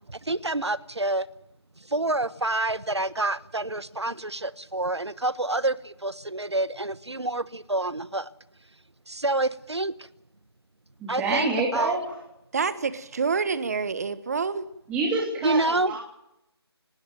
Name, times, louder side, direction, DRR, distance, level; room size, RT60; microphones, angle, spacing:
voice 1, 0.1-1.3 1.9-8.3 9.1-9.9 11.1-12.0 15.4-15.9, right 2 dB, 80° right, 1.3 m, -27 dB
voice 2, 11.0-12.2 14.9-16.0, right 3 dB, 10° right, 2.9 m, -27 dB
voice 3, 12.5-14.7, right 5 dB, 35° right, 1.4 m, -27 dB
20.0 x 19.5 x 9.2 m
figure-of-eight pair, 155°, 14 cm